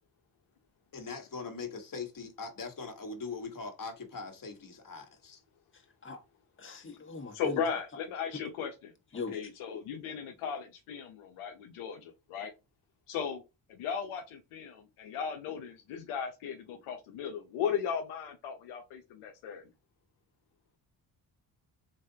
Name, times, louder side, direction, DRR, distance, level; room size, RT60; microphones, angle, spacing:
voice 1, 0.9-5.4, left 4 dB, 40° left, 1.4 m, -41 dB
voice 2, 6.6-7.6 9.1-9.4, left 4 dB, 25° left, 1.3 m, -40 dB
voice 3, 7.3-12.5 13.1-13.4 13.7-19.6, left 7 dB, 75° left, 0.8 m, -36 dB
3.8 x 3.3 x 2.8 m
hypercardioid pair, 45°, 50 cm